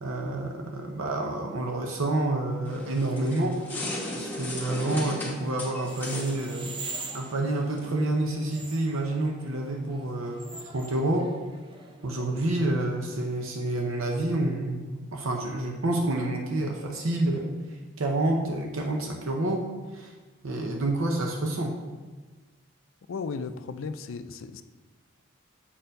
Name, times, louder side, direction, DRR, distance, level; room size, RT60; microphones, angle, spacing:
voice 1, 0.0-3.6 4.2-6.7 7.1-11.3 12.0-17.5 18.0-20.1 20.4-21.8, right 2 dB, 75° right, 1 dB, 0.7 m, -28 dB
sound 1, 2.7-7.9, left 1 dB, 10° left, 1.2 m, -36 dB
sound 2, 5.8-12.3, right 3 dB, 25° right, 0.5 m, -43 dB
voice 2, 23.1-24.6, left 4 dB, 70° left, 11 dB, 0.4 m, -35 dB
7.4 x 4.4 x 5.2 m, 1.3 s
head